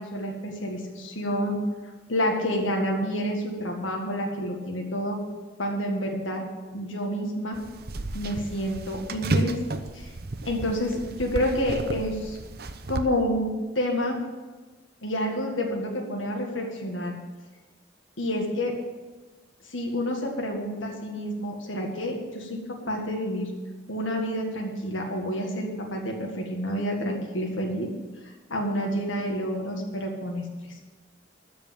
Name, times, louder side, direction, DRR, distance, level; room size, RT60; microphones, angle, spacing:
voice 1, 0.0-1.6 2.1-5.2 5.6-6.4 6.7-7.6 8.1-9.6 9.9-10.1 10.5-12.4 12.9-14.2 15.0-17.1 18.2-18.7 19.7-22.6 22.9-23.5 23.9-27.9 28.5-30.4, equal, 80° left, 1 dB, 1.8 m, -29 dB
sound 1, 7.5-13.0, right 2 dB, 50° right, 0.8 m, -32 dB
13.5 x 5.3 x 9.3 m, 1.3 s
head